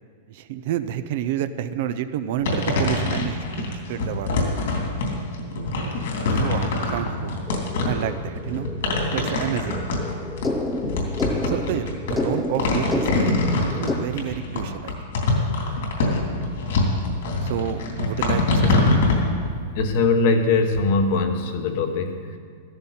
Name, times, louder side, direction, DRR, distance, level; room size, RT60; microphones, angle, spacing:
voice 1, 0.3-4.5 6.3-7.3 7.9-8.7 9.1-9.8 11.5-13.3 13.7-15.0 15.4-15.5 17.4-19.1, right 11 dB, 45° right, 11 dB, 0.5 m, -29 dB
sound 1, 2.4-19.2, left 2 dB, 65° left, 3.3 m, -24 dB
sound 2, 7.5-13.9, left 2 dB, 5° left, 0.5 m, -30 dB
voice 2, 19.4-22.4, left 3 dB, 45° left, 6 dB, 1.2 m, -22 dB
15.0 x 13.5 x 4.3 m, 2.1 s
supercardioid pair, 175°, 0 cm